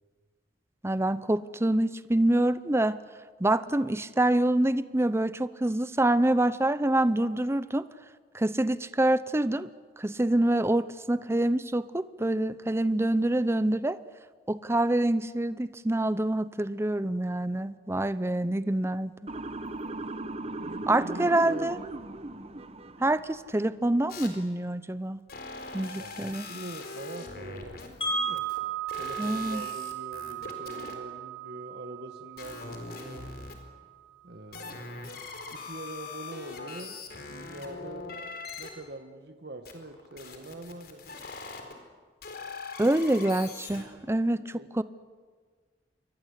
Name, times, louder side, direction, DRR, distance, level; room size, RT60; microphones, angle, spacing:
voice 1, 0.8-3.0 3.4-7.9 8.3-9.7 10.0-14.0 14.5-19.1 20.9-21.8 23.0-25.2 25.7-26.5 29.2-29.6 42.8-44.8, right 1 dB, 15° right, 14 dB, 0.7 m, -26 dB
Motor vehicle (road) / Siren, 19.3-23.4, right 2 dB, 35° right, 1.2 m, -38 dB
voice 2, 20.6-21.8 25.9-28.5 28.9-33.3 34.2-35.0 35.5-37.0 37.3-38.2 38.6-41.0 44.5-44.8, right 2 dB, 65° right, 6 dB, 1.7 m, -43 dB
sound 1, 24.1-24.3 25.3-28.6 28.9-30.9 32.4-33.5 34.5-38.7 39.6-41.7 42.2-43.8, left 4 dB, 60° left, 4.3 m, -41 dB
Wind chime, 28.0-34.0, right 6 dB, 30° left, 5.0 m, -36 dB
28.0 x 23.5 x 8.3 m, 1.5 s
head